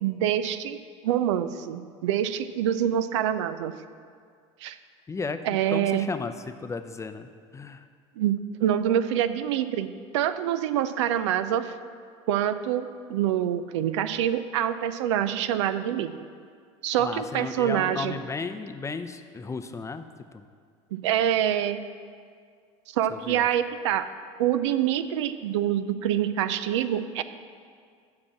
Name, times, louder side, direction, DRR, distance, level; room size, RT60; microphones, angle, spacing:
voice 1, 0.0-3.7 4.6-4.8 5.4-6.1 8.2-9.9 10.1-11.7 12.3-16.2 16.8-18.1 20.9-21.8 22.9-24.1 24.4-27.2, right 10 dB, 85° right, 12 dB, 0.4 m, -26 dB
voice 2, 5.1-5.4 5.7-7.9 17.0-20.1 20.3-20.4 23.1-23.5, left 4 dB, 20° left, 9 dB, 0.6 m, -34 dB
7.7 x 5.9 x 7.1 m, 2.1 s
supercardioid pair, 90°, 15 cm